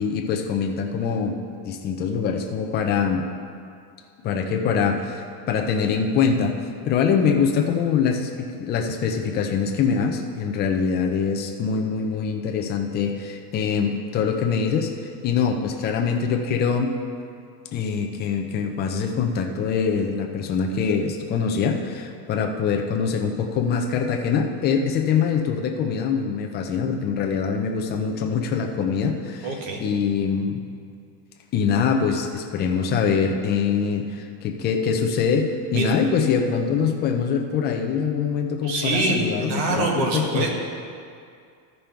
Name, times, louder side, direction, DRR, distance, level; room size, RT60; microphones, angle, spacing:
voice 1, 0.0-1.4 1.6-3.2 4.2-6.5 6.8-14.9 15.2-17.0 17.7-29.5 29.8-30.6 31.5-40.4, left 6 dB, 20° left, 2 dB, 0.5 m, -24 dB
voice 2, 29.4-29.8 35.7-35.9 38.6-40.5, right 3 dB, 85° right, 1 dB, 1.8 m, -24 dB
13.0 x 5.4 x 4.4 m, 2.3 s
supercardioid pair, 160°, 49 cm